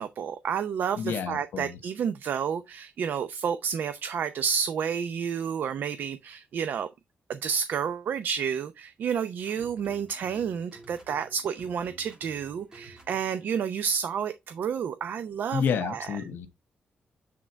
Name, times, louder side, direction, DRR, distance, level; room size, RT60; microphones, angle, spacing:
voice 1, 0.0-6.9 7.3-16.1, right 7 dB, 65° right, 0.6 m, -30 dB
voice 2, 1.0-1.8 15.5-16.5, left 7 dB, 85° left, 1.3 m, -30 dB
sound 1, 9.5-13.5, right 2 dB, 20° right, 2.3 m, -52 dB
8.4 x 3.8 x 4.4 m
wide cardioid pair, 160°, 4 cm